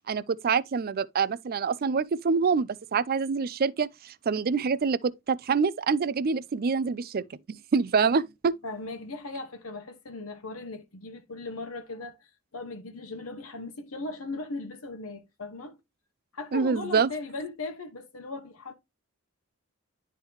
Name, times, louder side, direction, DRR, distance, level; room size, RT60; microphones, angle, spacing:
voice 1, 0.1-8.6 16.5-17.1, right 5 dB, 45° right, 0.4 m, -26 dB
voice 2, 8.6-15.8 16.3-18.7, left 3 dB, 85° left, 1.1 m, -38 dB
10.5 x 3.6 x 3.1 m
head